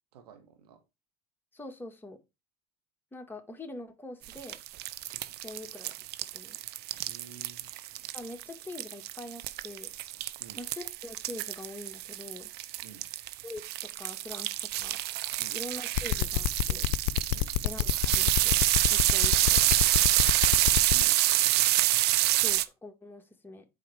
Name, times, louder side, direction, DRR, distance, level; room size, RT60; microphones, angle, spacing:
voice 1, 0.1-0.8 7.0-7.7 10.4-10.6 12.8-13.1 15.4-15.6 17.3-17.5 20.9-21.6, right 7 dB, 85° right, 5 dB, 2.0 m, -51 dB
voice 2, 1.5-2.2 3.1-4.6 5.4-6.0 6.3-6.6 8.1-9.9 10.6-12.5 13.4-15.0 15.5-16.9 17.6-18.6 18.9-19.6 22.3-23.7, left 2 dB, 10° left, 4 dB, 1.9 m, -44 dB
sound 1, 4.2-22.6, right 15 dB, 55° right, 0.9 m, -27 dB
sound 2, 16.0-21.0, left 20 dB, 65° left, 0.5 m, -27 dB
8.3 x 4.9 x 4.8 m, 0.25 s
hypercardioid pair, 85°, 19 cm